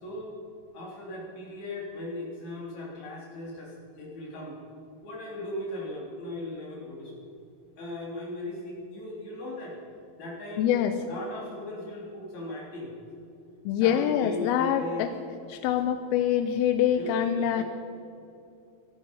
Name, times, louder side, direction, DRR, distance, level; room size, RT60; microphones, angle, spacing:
voice 1, 0.0-0.4 0.7-4.5 5.0-7.3 7.8-9.8 10.2-10.7 11.0-12.9 13.8-15.1 16.9-17.6, left 1 dB, 45° left, -3 dB, 4.3 m, -38 dB
voice 2, 10.6-10.9 13.7-15.1 15.5-17.6, left 10 dB, 85° left, 9 dB, 2.3 m, -25 dB
16.5 x 13.5 x 5.3 m, 2.6 s
omnidirectional pair, 4.7 m